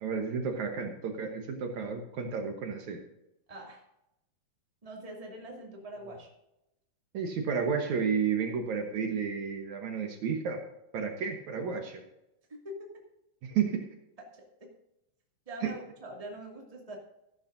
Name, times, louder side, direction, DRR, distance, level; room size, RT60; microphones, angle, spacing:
voice 1, 0.0-3.0 7.1-10.6 10.9-12.0 13.4-13.8 15.6-15.7, right 6 dB, 65° right, 4 dB, 2.3 m, -31 dB
voice 2, 3.5-3.8 4.8-6.3 12.5-12.6 14.4-14.5 15.5-17.0, right 1 dB, 15° right, -1 dB, 1.9 m, -44 dB
14.0 x 12.0 x 2.6 m, 0.88 s
omnidirectional pair, 3.8 m